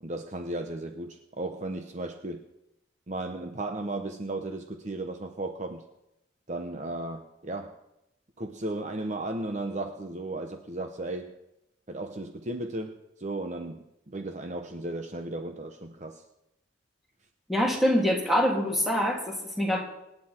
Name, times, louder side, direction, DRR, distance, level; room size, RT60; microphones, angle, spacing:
voice 1, 0.0-2.4 3.1-5.8 6.5-7.7 8.4-11.3 11.9-16.2, right 2 dB, 40° right, 6 dB, 0.9 m, -35 dB
voice 2, 17.5-19.8, equal, ahead, -2 dB, 3.1 m, -25 dB
25.5 x 10.0 x 4.4 m, 0.88 s
head